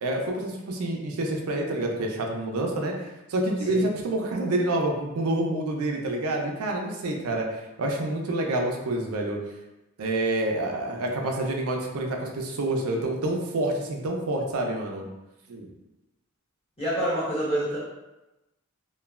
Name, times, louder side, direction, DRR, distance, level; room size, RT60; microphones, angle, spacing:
voice 1, 0.0-2.9 3.3-7.5 7.8-9.4 10.0-15.0 15.5-15.7, right 1 dB, 85° right, 1 dB, 0.4 m, -27 dB
voice 2, 16.8-17.8, equal, 25° left, -9 dB, 1.1 m, -27 dB
3.0 x 2.1 x 2.3 m, 0.99 s
head